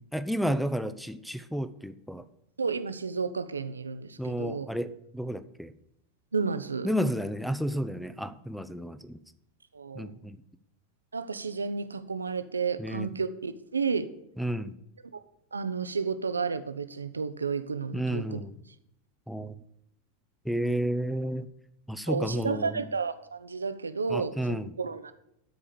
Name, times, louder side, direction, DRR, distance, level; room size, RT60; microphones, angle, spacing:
voice 1, 0.0-2.2 4.2-5.7 6.8-9.2 9.9-10.4 12.8-13.1 14.4-14.7 17.9-18.5 19.3-19.6 20.4-21.5 21.9-22.8 24.1-24.7, equal, ahead, 15 dB, 0.6 m, -31 dB
voice 2, 2.6-4.7 6.3-6.9 9.7-10.1 11.1-14.1 15.1-15.2 15.5-18.4 22.1-25.1, right 5 dB, 80° right, 12 dB, 0.6 m, -32 dB
12.0 x 4.9 x 6.9 m, 0.78 s
figure-of-eight pair, 85°, 0 cm